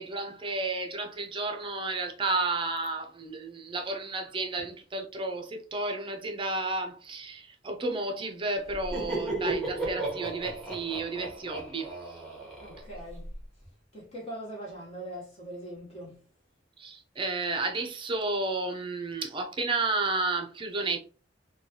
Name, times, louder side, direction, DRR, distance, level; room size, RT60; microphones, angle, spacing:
voice 1, 0.0-12.2 16.8-21.0, right 3 dB, 30° right, 0.5 m, -32 dB
Laughter, 8.7-13.4, right 2 dB, 5° left, 0.9 m, -35 dB
voice 2, 12.6-13.3 13.9-16.2, right 1 dB, 35° left, 1.0 m, -41 dB
3.1 x 2.3 x 2.8 m
head